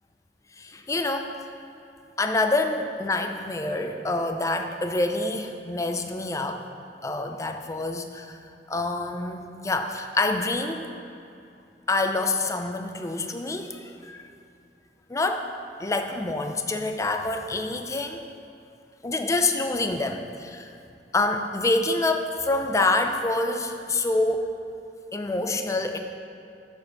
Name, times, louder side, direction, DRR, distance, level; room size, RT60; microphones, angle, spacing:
voice 1, 0.6-1.3 2.2-6.6 7.0-8.4 8.7-10.9 11.9-14.2 15.1-15.5 15.8-18.2 19.0-20.7 21.1-24.5 25.1-26.0, left 2 dB, 20° left, 5 dB, 0.4 m, -26 dB
6.5 x 5.3 x 6.9 m, 2.6 s
head